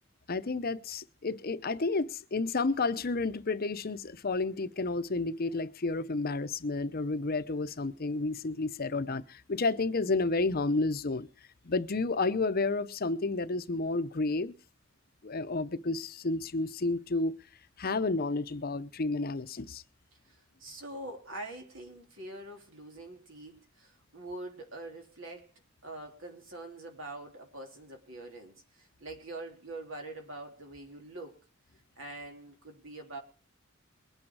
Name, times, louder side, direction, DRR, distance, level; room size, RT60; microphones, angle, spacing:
voice 1, 0.3-11.3 11.6-14.5 15.2-17.3 17.8-19.8, left 3 dB, 50° left, 0.8 m, -31 dB
voice 2, 20.3-25.5 25.8-31.3 32.0-33.2, right 2 dB, 70° right, 3.5 m, -44 dB
22.0 x 8.8 x 4.7 m
head